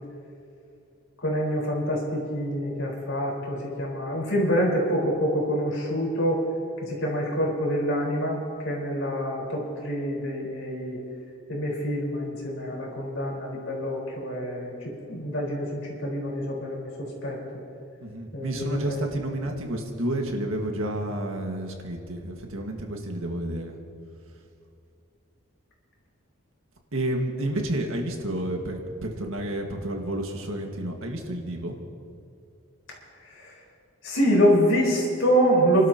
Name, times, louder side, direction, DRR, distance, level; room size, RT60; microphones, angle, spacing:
voice 1, 1.2-6.4 6.8-11.0 11.5-17.4 18.3-19.0 33.4-33.5 34.0-35.9, equal, 75° left, -2 dB, 4.4 m, -26 dB
voice 2, 18.0-23.8 26.9-31.8, right 1 dB, 80° right, 2 dB, 1.8 m, -30 dB
29.5 x 12.5 x 2.9 m, 2.4 s
head